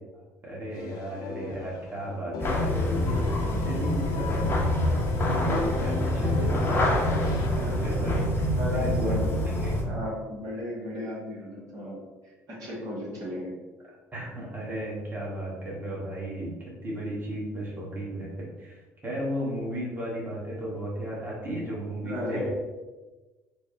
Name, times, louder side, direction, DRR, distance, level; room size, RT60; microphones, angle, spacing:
voice 1, 0.4-7.0 7.8-8.3 8.7-9.2 9.4-9.7 14.1-18.8 19.0-22.5, right 1 dB, 25° right, -5 dB, 1.4 m, -34 dB
sound 1, 0.7-2.0 2.3-7.5, left 3 dB, 55° left, 0.4 m, -38 dB
sound 2, 2.4-9.8, left 1 dB, 30° left, 0.9 m, -26 dB
voice 2, 8.6-9.4 9.8-12.0 12.2-13.5 22.0-22.5, left 1 dB, 50° right, -6 dB, 1.3 m, -34 dB
3.4 x 2.3 x 4.2 m, 1.2 s
figure-of-eight pair, 60°, 8 cm